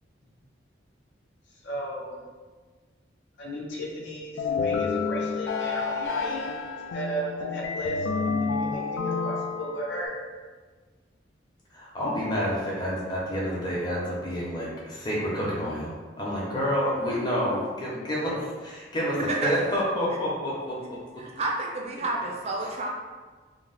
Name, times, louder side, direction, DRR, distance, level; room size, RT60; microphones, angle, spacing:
voice 1, 1.6-2.2 3.4-6.6 6.9-8.0 8.4-10.1, right 1 dB, 75° left, -3 dB, 0.7 m, -35 dB
sound 1, 4.4-10.1, left 4 dB, 90° left, 0.3 m, -29 dB
voice 2, 11.7-21.2 22.6-22.7, equal, 25° left, -5 dB, 0.7 m, -29 dB
voice 3, 19.3-19.8 21.2-22.9, right 2 dB, 35° right, 0 dB, 0.3 m, -30 dB
2.9 x 2.0 x 3.9 m, 1.4 s
head